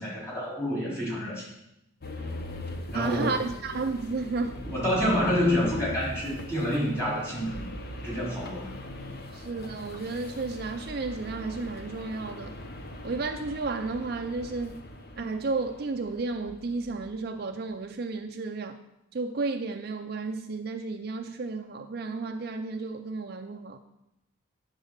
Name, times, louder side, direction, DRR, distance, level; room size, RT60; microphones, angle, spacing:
voice 1, 0.0-1.5 2.9-3.4 4.7-7.6 8.0-8.7, equal, 15° left, 3.6 m, -28 dB
sound 1, 2.0-17.2, left 1 dB, 50° left, 0.9 m, -41 dB
voice 2, 2.9-4.6 9.3-12.5 13.0-14.8 15.2-18.8 19.1-23.8, right 3 dB, 50° right, 0.4 m, -32 dB
9.4 x 4.0 x 6.5 m
head